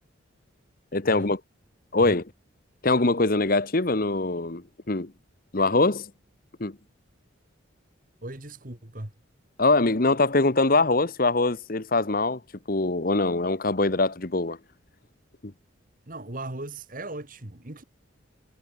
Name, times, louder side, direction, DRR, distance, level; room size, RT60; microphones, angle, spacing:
voice 1, 0.9-1.4 1.9-2.2 2.8-5.1 5.5-6.1 6.6-6.8 9.6-12.4 12.7-14.6 15.4-15.5, left 3 dB, 45° left, 1.2 m, -23 dB
voice 2, 8.2-9.1 16.1-17.8, right 2 dB, 45° right, 2.2 m, -38 dB
head